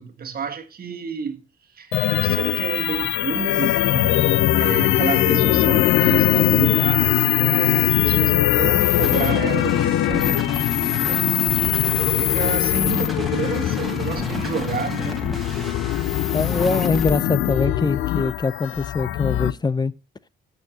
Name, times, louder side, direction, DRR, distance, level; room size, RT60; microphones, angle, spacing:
voice 1, 0.0-1.4 1.7-10.5 10.9-11.8 12.1-15.2, right 6 dB, 50° right, 1.6 m, -30 dB
sound 1, 1.9-19.5, left 14 dB, 85° left, 0.5 m, -21 dB
sound 2, 8.8-17.1, equal, ahead, 1.8 m, -32 dB
voice 2, 16.3-19.9, left 4 dB, 20° left, 0.6 m, -23 dB
18.0 x 6.8 x 2.9 m
cardioid pair, 90°, 20 cm